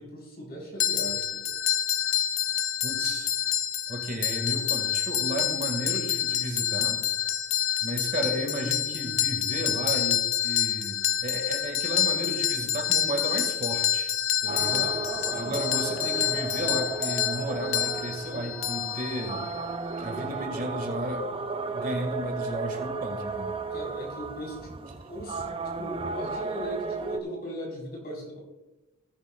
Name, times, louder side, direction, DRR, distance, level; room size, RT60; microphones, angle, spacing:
voice 1, 0.0-1.6 14.5-15.6 23.7-28.4, equal, 45° left, -2 dB, 4.3 m, -39 dB
sound 1, 0.8-19.6, left 10 dB, 60° left, 0.5 m, -28 dB
voice 2, 2.8-3.3 3.9-7.0 7.8-11.0 11.2-14.1 14.4-14.9 15.3-19.4 20.0-21.3 21.7-23.5, right 1 dB, 40° right, 4 dB, 1.9 m, -33 dB
sound 2, 14.5-27.2, right 4 dB, 25° right, 0.5 m, -34 dB
17.5 x 9.7 x 2.4 m, 1.1 s
head